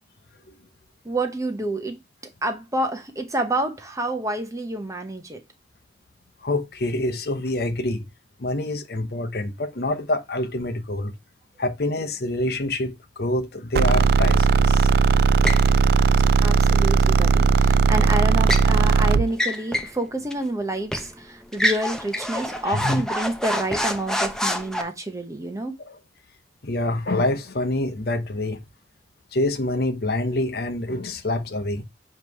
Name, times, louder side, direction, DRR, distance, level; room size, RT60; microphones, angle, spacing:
voice 1, 1.0-2.0 2.4-5.4 16.4-25.7, right 1 dB, 20° right, 0.9 m, -28 dB
voice 2, 6.4-8.0 8.4-11.1 11.6-14.9 22.7-23.0 25.9-26.0 26.6-28.6 29.3-31.8, left 1 dB, 60° left, 0.8 m, -26 dB
sound 1, 13.8-19.3, right 5 dB, 60° right, 0.3 m, -17 dB
sound 2, 15.4-15.7 17.9-18.7 19.3-20.0 20.3-20.4 20.9-21.1 21.5-24.8, left 1 dB, 5° left, 0.7 m, -27 dB
7.3 x 3.1 x 4.7 m
head